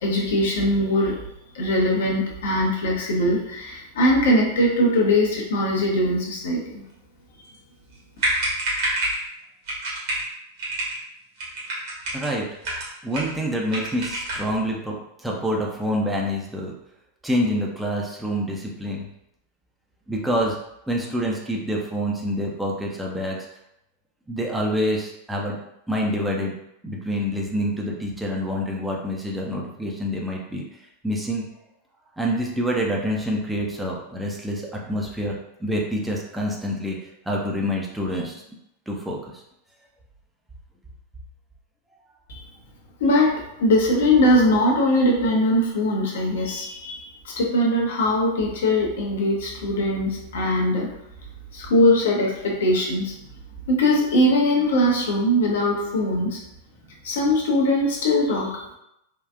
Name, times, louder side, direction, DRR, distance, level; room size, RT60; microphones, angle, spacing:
voice 1, 0.0-1.2 1.5-6.8 7.4-7.5 42.3-42.4 43.0-50.9 51.5-53.1 53.7-56.4 57.0-58.7, left 1 dB, 60° left, -2 dB, 0.7 m, -21 dB
sound 1, 7.9-8.0 8.2-9.2 9.7-10.3 10.6-11.0 11.4-12.3 12.6-13.4 13.7-14.5, right 1 dB, 55° right, 1.3 m, -27 dB
voice 2, 12.1-12.5 13.0-16.7 17.2-19.1 20.1-20.6 20.9-23.4 24.3-25.6 25.9-26.5 26.8-30.6 31.0-31.4 32.2-37.0 37.3-38.4 38.9-39.2, equal, 5° right, -2 dB, 0.5 m, -26 dB
3.7 x 2.4 x 2.3 m, 0.81 s
figure-of-eight pair, 90°, 0 cm